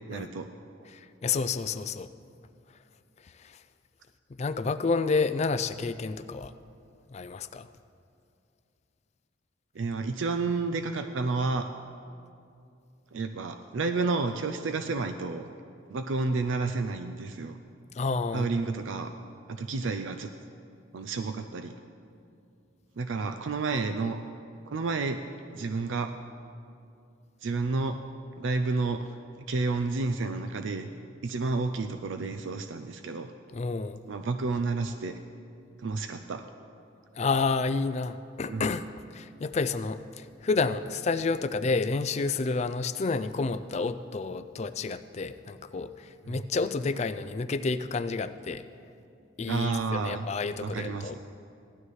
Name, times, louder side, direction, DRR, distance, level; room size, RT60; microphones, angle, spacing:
voice 1, 0.1-0.5 0.8-0.9 9.7-11.7 13.1-15.5 15.9-17.6 18.3-19.1 19.5-20.3 20.9-21.7 23.0-24.2 24.7-25.2 25.5-26.1 27.4-28.0 28.4-29.1 29.5-30.9 31.2-33.3 34.1-35.2 35.8-36.5 38.5-38.7 46.2-46.4 49.5-50.3 50.6-51.2, right 3 dB, 75° right, 7 dB, 0.5 m, -30 dB
voice 2, 0.9-2.1 3.4-3.6 4.4-6.5 7.1-7.7 17.9-18.5 33.5-34.0 37.1-38.8 39.1-48.6 49.4-51.2, left 4 dB, 35° left, 11 dB, 0.4 m, -30 dB
17.5 x 12.5 x 3.2 m, 2.5 s
head